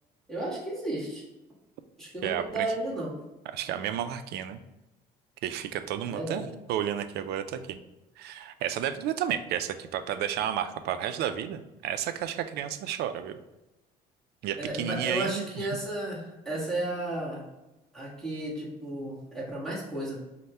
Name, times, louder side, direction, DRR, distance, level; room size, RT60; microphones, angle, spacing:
voice 1, 0.3-1.2 2.0-3.1 6.1-6.5 14.6-17.4 17.9-20.2, right 1 dB, 5° left, -5 dB, 1.4 m, -33 dB
voice 2, 2.2-2.7 3.5-4.6 5.4-7.8 8.2-13.4 14.4-15.7, right 10 dB, 75° right, 10 dB, 0.4 m, -32 dB
5.3 x 2.1 x 3.3 m, 0.99 s
cardioid pair, 110°, 17 cm